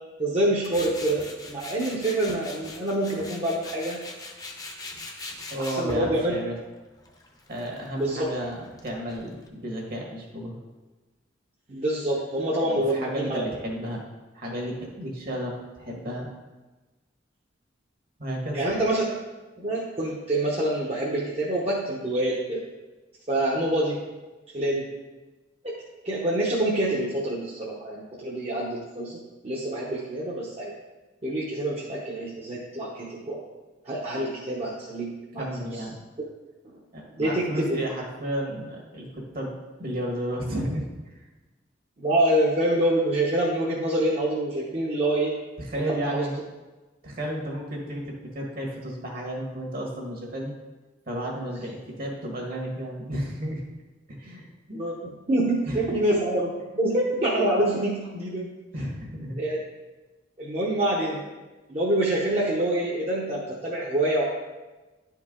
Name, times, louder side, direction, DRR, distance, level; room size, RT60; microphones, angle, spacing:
voice 1, 0.2-4.0 5.6-6.3 7.9-8.3 11.7-13.4 18.5-19.1 19.6-22.6 23.3-24.0 24.5-24.9 25.6-25.7 26.0-30.7 31.2-33.4 33.8-35.5 36.6-36.8 37.2-37.8 42.0-45.4 45.8-46.2 54.7-58.5 59.4-59.6 60.4-61.2 61.7-64.2, right 1 dB, 35° right, -5 dB, 0.9 m, -26 dB
Tools, 0.6-9.5, left 2 dB, 20° left, 0.8 m, -41 dB
voice 2, 5.5-6.5 7.5-10.6 12.6-14.0 14.3-16.3 18.2-18.6 35.4-35.9 36.9-39.5 39.8-41.1 45.6-46.4 47.0-50.5 51.1-53.6 54.1-54.8 55.6-55.8 58.7-59.4, equal, 50° right, 0 dB, 1.6 m, -32 dB
10.0 x 4.6 x 3.7 m, 1.2 s
head